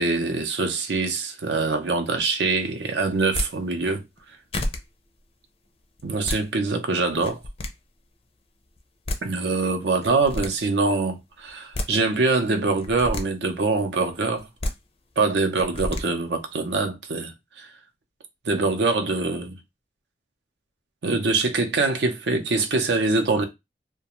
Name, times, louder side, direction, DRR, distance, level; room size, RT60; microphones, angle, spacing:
voice 1, 0.0-4.0 6.0-7.4 9.2-14.5 15.2-17.7 18.5-19.6 21.0-23.5, right 3 dB, 75° right, 0.6 m, -24 dB
sound 1, 3.2-3.5 4.2-4.3 4.5-4.8 6.0-6.4 7.1-7.7 8.8-8.9 9.1-9.2 10.0-10.5 11.5-11.9 12.8-13.2 14.4-14.7 15.6-16.0, left 1 dB, 35° left, 0.4 m, -29 dB
2.4 x 2.2 x 2.9 m
head